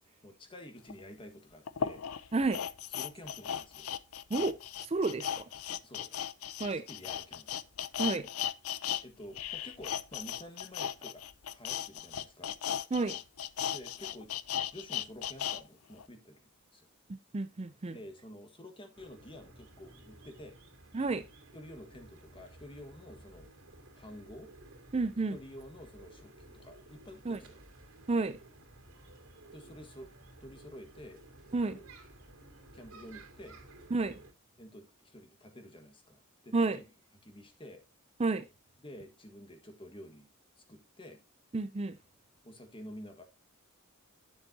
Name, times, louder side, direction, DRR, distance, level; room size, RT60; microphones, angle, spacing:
voice 1, 0.2-2.0 2.9-3.9 5.8-6.1 6.7-7.5 9.0-11.2 11.5-12.9 13.7-14.3 14.7-16.4 16.7-16.9 17.9-20.6 21.5-23.5 23.9-24.5 25.3-27.6 29.5-30.1 30.4-31.2 31.7-31.9 32.7-33.6 34.6-36.8 37.2-37.8 38.8-40.3 40.7-41.2 42.4-43.2, left 1 dB, 25° left, 1.6 m, -50 dB
sound 1, 0.9-1.0 1.7-9.0 9.3-15.6 16.0-16.1, left 9 dB, 85° left, 0.6 m, -36 dB
voice 2, 2.3-2.6 4.3-5.5 6.6-6.9 8.0-8.3 12.9-13.2 17.1-18.0 20.9-21.2 24.9-25.4 27.3-27.4 28.1-28.4 31.5-31.8 33.9-34.1 36.5-36.8 38.2-38.5 41.5-42.0, right 3 dB, 30° right, 0.5 m, -31 dB
sound 2, 18.9-34.3, right 2 dB, 70° right, 3.0 m, -55 dB
9.8 x 7.1 x 2.8 m
head